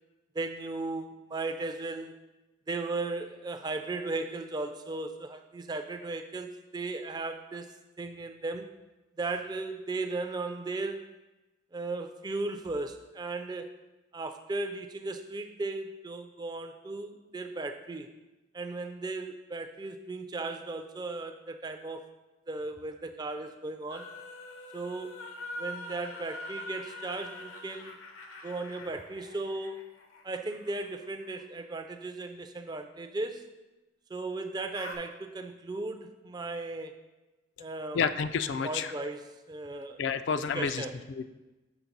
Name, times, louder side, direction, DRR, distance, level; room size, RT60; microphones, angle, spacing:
voice 1, 0.3-2.2 2.7-7.7 8.0-8.7 9.2-11.1 11.7-13.7 14.1-18.1 18.5-22.0 22.5-24.1 24.7-25.2 25.6-28.0 28.4-29.8 30.2-33.5 34.1-36.9 37.6-38.0 38.6-39.2 39.5-40.0 40.5-40.9, right 3 dB, 20° right, 7 dB, 0.3 m, -36 dB
sound 1, 23.9-31.8 34.7-35.0, left 1 dB, 85° left, 0.9 m, -44 dB
voice 2, 37.9-38.9 40.0-41.2, left 6 dB, 60° left, 11 dB, 0.3 m, -30 dB
5.9 x 4.3 x 5.3 m, 1.1 s
head